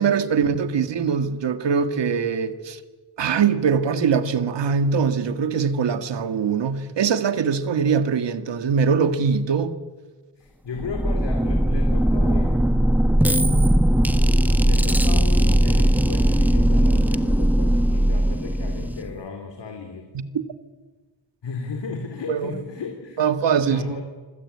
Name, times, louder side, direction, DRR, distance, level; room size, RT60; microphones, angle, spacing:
voice 1, 0.0-2.8 3.2-9.8 20.1-20.2 22.3-22.5 23.2-24.0, right 6 dB, 85° right, 1.9 m, -22 dB
voice 2, 10.4-12.8 14.6-20.1 21.4-23.3 23.7-24.0, left 5 dB, 85° left, 3.7 m, -35 dB
sound 1, 10.7-19.2, right 1 dB, 5° right, 1.3 m, -19 dB
25.5 x 25.0 x 8.6 m
cardioid pair, 85°, 42 cm